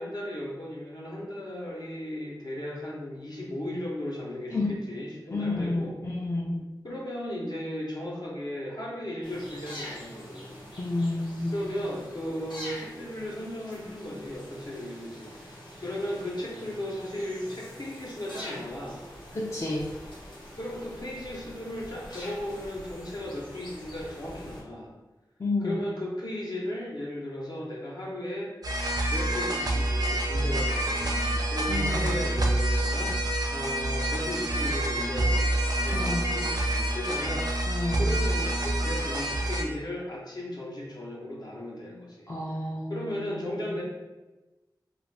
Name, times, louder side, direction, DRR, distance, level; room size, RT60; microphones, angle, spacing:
voice 1, 0.0-6.0 6.8-10.6 11.5-19.0 20.6-24.9 25.6-28.5 29.0-33.2 33.5-37.5 38.0-42.3 42.9-43.8, left 1 dB, 60° left, -4 dB, 0.8 m, -36 dB
voice 2, 5.3-6.6 10.8-11.7 19.3-19.9 25.4-25.8 31.7-32.2 35.9-36.4 37.7-38.1 42.3-43.7, left 2 dB, 40° left, -5 dB, 0.4 m, -30 dB
sound 1, 9.2-24.6, equal, 85° left, 0.9 m, -45 dB
sound 2, 28.6-39.6, right 1 dB, 55° right, 0.4 m, -27 dB
2.4 x 2.4 x 3.2 m, 1.1 s
wide cardioid pair, 80°, 8 cm